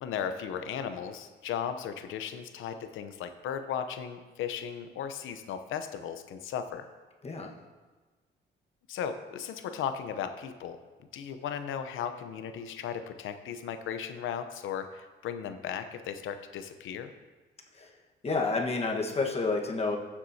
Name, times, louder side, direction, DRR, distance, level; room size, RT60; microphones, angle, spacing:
voice 1, 0.0-6.9 8.9-10.8 11.1-17.1, left 8 dB, 80° left, 9 dB, 0.8 m, -36 dB
voice 2, 18.2-20.0, left 3 dB, 30° left, 1 dB, 1.4 m, -29 dB
15.0 x 7.3 x 2.8 m, 1.3 s
cardioid pair, 90°, 20 cm